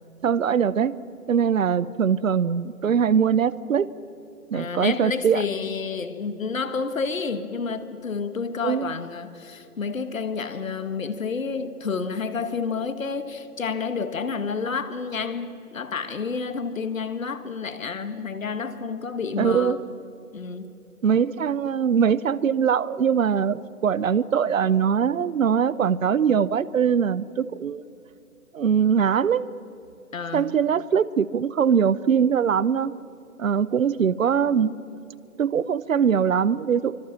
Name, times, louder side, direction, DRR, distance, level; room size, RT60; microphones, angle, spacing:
voice 1, 0.2-0.9 1.3-3.9 4.5-5.4 8.6-8.9 19.4-19.8 21.0-27.8 28.5-29.4 30.3-32.9 33.4-34.7 35.4-36.9, right 7 dB, 60° right, 0.8 m, -22 dB
voice 2, 4.5-19.8 20.3-20.8 30.1-30.5, left 5 dB, 60° left, 1.9 m, -30 dB
26.0 x 25.0 x 7.5 m
figure-of-eight pair, 135°, 44 cm